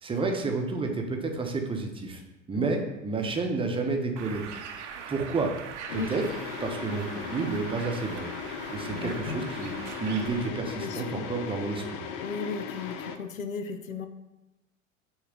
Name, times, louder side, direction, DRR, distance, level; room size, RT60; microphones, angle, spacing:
voice 1, 0.0-2.2 2.5-4.4 5.1-5.5 5.9-6.2 6.6-8.2 8.7-12.0, right 3 dB, 15° right, 3 dB, 0.9 m, -30 dB
Bird, 4.2-10.5, right 7 dB, 60° right, 0.8 m, -42 dB
sound 1, 5.9-13.2, left 6 dB, 40° left, 0.6 m, -37 dB
voice 2, 8.9-9.4 10.8-11.2 12.2-14.1, left 5 dB, 85° left, 8 dB, 0.6 m, -36 dB
6.5 x 3.2 x 5.2 m, 1.0 s
figure-of-eight pair, 80°, 39 cm